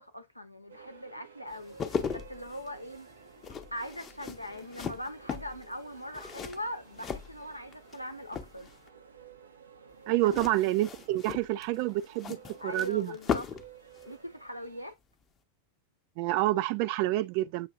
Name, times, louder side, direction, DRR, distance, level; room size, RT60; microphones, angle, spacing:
voice 1, 0.0-3.1 3.7-8.7 10.2-10.5 12.6-13.5 14.1-15.0, left 1 dB, 90° left, 0.7 m, -41 dB
sound 1, 0.7-14.9, right 6 dB, 75° right, 0.7 m, -54 dB
sound 2, 1.5-8.0 8.3-8.9 10.2-13.7 14.0-14.1, left 7 dB, 25° left, 0.7 m, -38 dB
voice 2, 10.1-12.4 12.6-13.1 16.2-17.7, right 16 dB, 45° right, 0.3 m, -28 dB
7.1 x 2.8 x 2.4 m
figure-of-eight pair, 90°, 0 cm